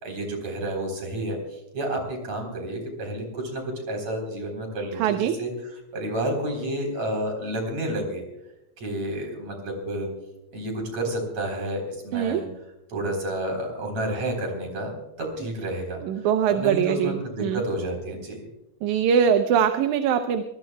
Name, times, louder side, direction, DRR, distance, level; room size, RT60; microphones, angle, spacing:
voice 1, 0.0-1.4 1.7-5.5 5.9-8.2 8.8-10.1 10.5-12.5 12.9-16.0 16.5-18.4, right 1 dB, 65° right, 2 dB, 5.0 m, -30 dB
voice 2, 5.0-5.4 12.1-12.4 16.0-17.6 18.8-20.4, right 8 dB, 80° right, 7 dB, 2.2 m, -22 dB
25.0 x 20.0 x 2.3 m, 0.91 s
omnidirectional pair, 3.4 m